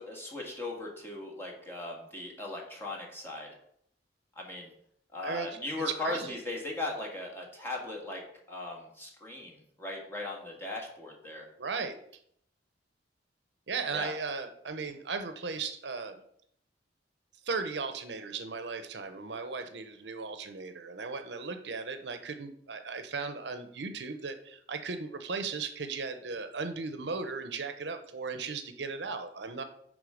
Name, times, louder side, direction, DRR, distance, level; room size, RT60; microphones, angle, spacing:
voice 1, 0.0-3.5 4.3-4.7 5.1-11.5 13.9-14.1, left 2 dB, 15° left, -1 dB, 1.7 m, -38 dB
voice 2, 5.8-6.3 11.6-12.0 13.7-16.1 17.4-29.6, right 4 dB, 70° right, 8 dB, 0.7 m, -36 dB
10.0 x 3.7 x 5.0 m, 0.70 s
head